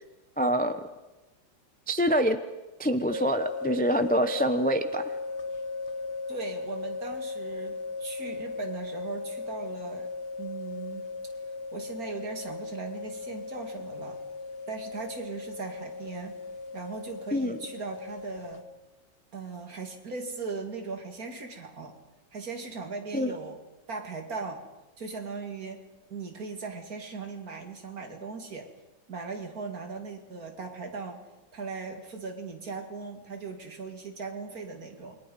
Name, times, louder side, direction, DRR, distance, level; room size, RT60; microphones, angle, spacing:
voice 1, 0.4-0.8 1.9-2.4 2.8-5.1 17.3-17.6 23.1-23.4, equal, 10° left, 9 dB, 0.4 m, -25 dB
sound 1, 3.1-18.6, left 3 dB, 35° left, 1.4 m, -37 dB
voice 2, 6.3-10.1 10.4-11.1 11.7-14.2 14.7-16.4 16.7-18.7 19.3-22.0 22.3-23.6 23.9-24.6 25.0-25.8 26.1-28.7 29.1-31.2 31.5-35.2, right 4 dB, 45° right, 4 dB, 2.8 m, -38 dB
28.5 x 22.5 x 5.4 m, 1.1 s
omnidirectional pair, 2.1 m